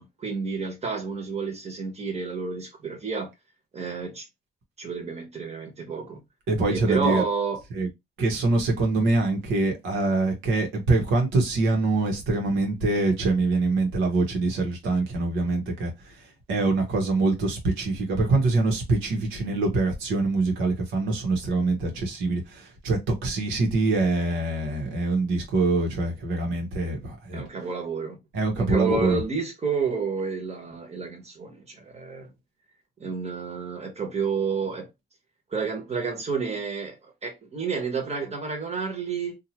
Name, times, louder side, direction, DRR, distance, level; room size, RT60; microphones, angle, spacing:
voice 1, 0.0-3.3 3.7-4.2 4.8-6.2 6.7-7.6 27.3-28.2 28.6-32.3 33.0-34.9 35.5-39.4, right 5 dB, 35° right, 1.1 m, -30 dB
voice 2, 6.5-7.2 7.7-7.9 8.2-15.9 16.5-27.4 28.3-29.2, right 3 dB, 90° right, 1.1 m, -24 dB
2.7 x 2.4 x 2.9 m
cardioid pair, 90°, 20 cm